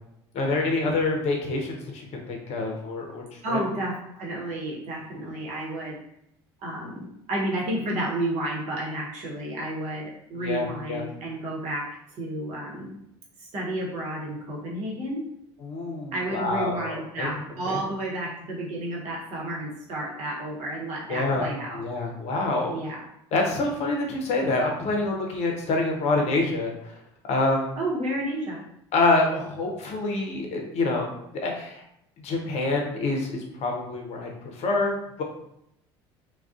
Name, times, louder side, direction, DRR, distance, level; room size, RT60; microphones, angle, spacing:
voice 1, 0.3-3.6 10.4-11.1 15.6-17.3 17.7-17.8 21.1-21.5 21.7-22.8 23.3-27.0 27.3-27.8 28.9-31.8 32.2-35.2, left 2 dB, 50° left, 1 dB, 0.7 m, -27 dB
voice 2, 3.4-6.0 6.6-13.0 13.4-15.2 16.1-21.8 22.7-23.0 27.8-28.6, right 1 dB, 55° right, -4 dB, 1.0 m, -31 dB
2.3 x 2.2 x 2.4 m, 0.78 s
hypercardioid pair, 70°, 14 cm